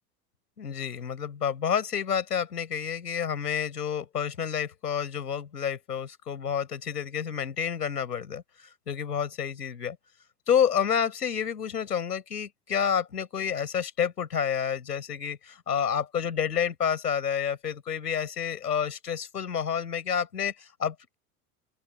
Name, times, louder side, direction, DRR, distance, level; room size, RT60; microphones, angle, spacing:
voice 1, 0.6-10.0 10.5-21.1, left 8 dB, 85° left, 5.0 m, -29 dB
open air
hypercardioid pair, 80°, 46 cm